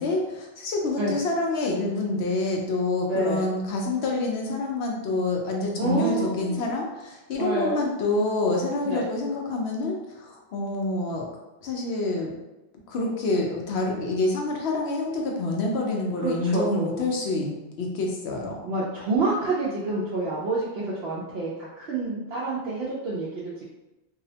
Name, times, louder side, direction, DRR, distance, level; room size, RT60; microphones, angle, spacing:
voice 1, 0.0-11.3 11.6-12.3 12.9-18.6, left 2 dB, 85° left, 0 dB, 0.9 m, -27 dB
voice 2, 3.1-3.5 5.8-6.7 7.4-7.8 8.8-9.1 16.2-17.1 18.6-23.6, right 3 dB, 75° right, -7 dB, 0.8 m, -28 dB
2.7 x 2.0 x 2.7 m, 1.0 s
omnidirectional pair, 1.0 m